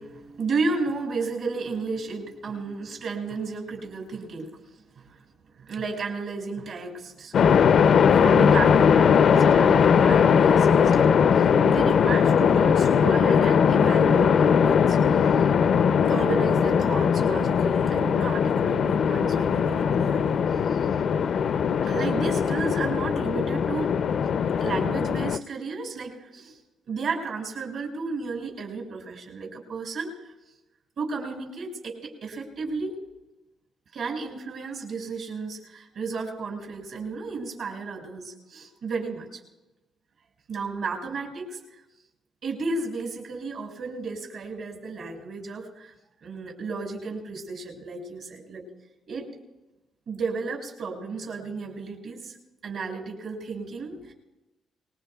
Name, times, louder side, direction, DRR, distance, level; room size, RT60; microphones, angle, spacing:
voice 1, 0.0-4.6 5.0-5.2 5.6-7.6 8.1-11.1 11.4-15.0 16.1-20.4 20.7-20.8 21.8-23.9 24.6-26.6 26.9-30.2 31.0-32.9 33.9-39.4 40.5-41.6 42.4-45.9 46.2-48.6 49.1-49.3 50.1-52.4 52.6-54.1, right 4 dB, 65° right, 1 dB, 6.4 m, -33 dB
sound 1, 7.3-25.4, left 7 dB, 60° left, 0.5 m, -20 dB
27.5 x 20.5 x 2.3 m, 1.0 s
cardioid pair, 90°, 0 cm